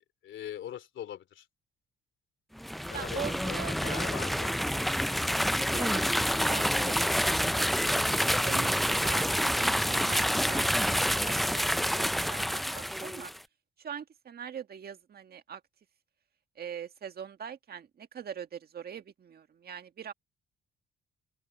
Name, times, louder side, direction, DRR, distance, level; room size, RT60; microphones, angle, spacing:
voice 1, 0.0-1.5 2.9-4.5, left 10 dB, 70° left, 2.9 m, -42 dB
sound 1, 2.6-13.4, equal, ahead, 0.4 m, -28 dB
voice 2, 2.9-4.1 5.1-7.1 7.5-13.3 13.8-15.6 16.6-20.1, right 8 dB, 50° right, 1.7 m, -43 dB
open air
cardioid pair, 90°, 20 cm